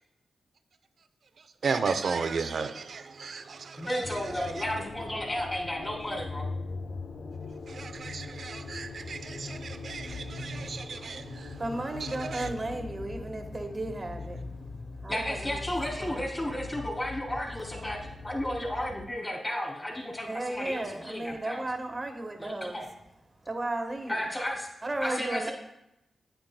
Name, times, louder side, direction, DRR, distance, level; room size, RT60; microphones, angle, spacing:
voice 1, 1.4-4.7 7.7-12.5, right 5 dB, 70° right, 0.6 m, -35 dB
voice 2, 3.7-6.4 15.1-21.6 22.4-22.9 24.1-24.7 25.0-25.5, left 1 dB, 20° left, 2.9 m, -33 dB
sound 1, 4.0-19.1, left 3 dB, 70° left, 0.7 m, -41 dB
voice 3, 11.6-14.5 15.0-15.6 16.0-16.1 20.3-22.8 23.5-24.2 24.8-25.5, right 2 dB, 35° right, 1.2 m, -34 dB
9.2 x 8.9 x 2.2 m
cardioid pair, 65°, 0 cm